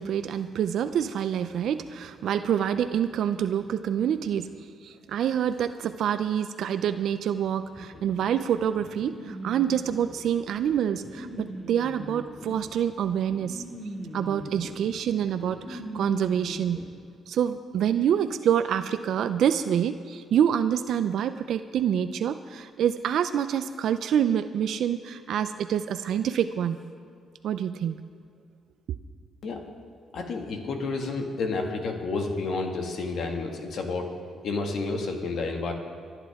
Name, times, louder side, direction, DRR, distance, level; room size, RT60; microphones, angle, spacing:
voice 1, 0.0-4.5 4.8-13.6 14.1-16.8 17.3-26.8 27.4-28.0, right 9 dB, 70° right, 10 dB, 0.5 m, -26 dB
pulmonary sounds Sibilo, 7.8-16.9, right 1 dB, 25° left, 2.5 m, -41 dB
voice 2, 30.1-34.1 34.4-35.7, left 3 dB, 65° left, 3 dB, 1.9 m, -30 dB
25.5 x 10.0 x 3.6 m, 2.2 s
cardioid pair, 90°, 0 cm